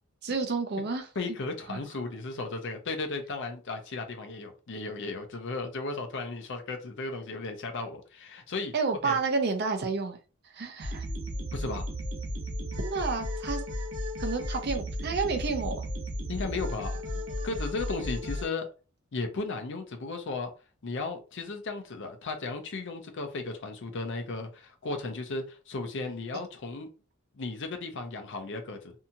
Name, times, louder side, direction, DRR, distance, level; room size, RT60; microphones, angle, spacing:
voice 1, 0.2-1.1 1.7-1.8 8.7-10.2 10.5-11.0 12.8-13.6 14.2-15.8, right 4 dB, 50° right, 0.6 m, -30 dB
voice 2, 1.2-8.7 9.0-9.2 11.5-11.9 16.3-18.7 19.1-20.5 20.8-26.9 27.3-28.9, left 3 dB, 60° left, 0.6 m, -35 dB
sound 1, 10.8-18.5, equal, 70° right, 1.0 m, -34 dB
2.7 x 2.3 x 2.7 m
head